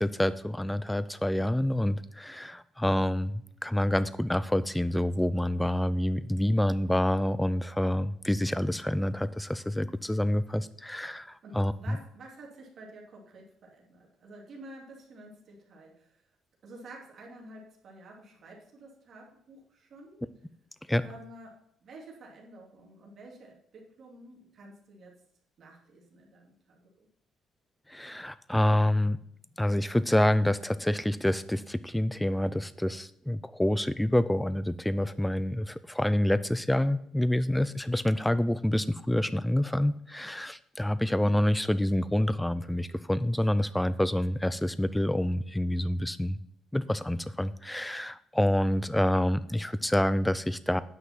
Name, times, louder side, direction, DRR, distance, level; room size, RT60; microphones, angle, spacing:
voice 1, 0.0-12.0 20.9-21.0 27.9-29.2 29.6-46.4 46.7-50.8, left 1 dB, 5° left, 15 dB, 0.5 m, -27 dB
voice 2, 11.4-16.3 16.6-20.2 21.0-25.2 25.6-27.1, right 2 dB, 50° right, -1 dB, 2.7 m, -50 dB
9.6 x 6.0 x 5.8 m, 0.71 s
cardioid pair, 115°, 0 cm